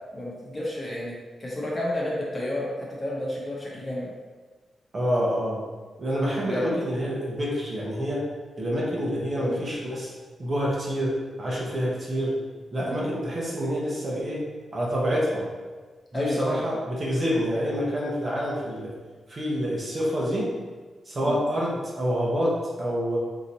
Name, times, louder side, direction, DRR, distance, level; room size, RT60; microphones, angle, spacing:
voice 1, 0.1-2.7 3.0-4.1 6.4-6.7 9.4-9.6 12.9-13.0 16.1-16.7 21.2-21.4, left 1 dB, 20° left, -5 dB, 1.0 m, -31 dB
voice 2, 4.9-5.6 6.0-8.3 8.6-10.1 10.4-12.4 12.7-14.5 14.7-15.4 16.1-18.9 19.3-20.5 21.1-23.2, equal, 35° right, -4 dB, 1.0 m, -27 dB
3.9 x 3.0 x 4.1 m, 1.4 s
wide cardioid pair, 145°, 0 cm